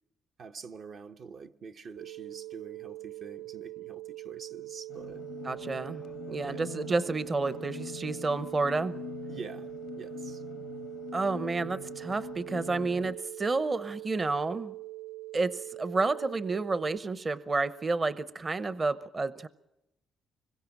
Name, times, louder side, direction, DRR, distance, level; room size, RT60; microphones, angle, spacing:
voice 1, 0.4-5.2 6.4-6.9 9.3-10.4, right 5 dB, 60° right, 0.9 m, -46 dB
sound 1, 2.0-17.0, right 19 dB, 85° right, 1.3 m, -43 dB
sound 2, 4.9-13.1, left 10 dB, 85° left, 0.9 m, -44 dB
voice 2, 5.4-8.9 11.1-14.7 15.3-19.5, right 3 dB, 30° right, 0.8 m, -30 dB
25.0 x 22.0 x 6.0 m
cardioid pair, 90°, 0 cm